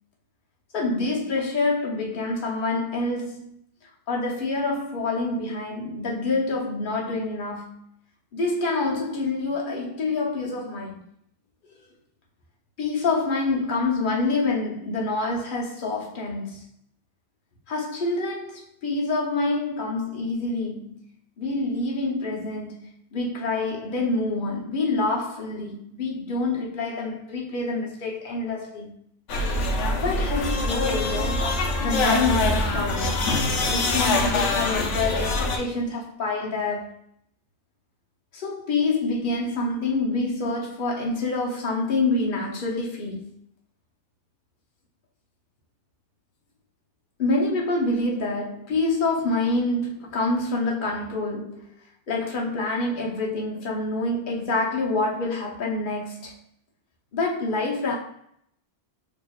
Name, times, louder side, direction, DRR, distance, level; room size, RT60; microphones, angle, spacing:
voice 1, 0.7-3.5 4.1-7.8 8.3-11.0 11.7-11.8 12.8-16.6 17.7-21.0 21.4-28.9 30.0-31.5 31.8-33.3 33.6-37.0 38.3-43.3 47.2-56.4 57.1-58.0, left 3 dB, 50° left, 1.0 m, -27 dB
sound 1, 29.3-35.6, left 2 dB, 85° left, 1.0 m, -24 dB
4.5 x 2.9 x 2.3 m
omnidirectional pair, 1.2 m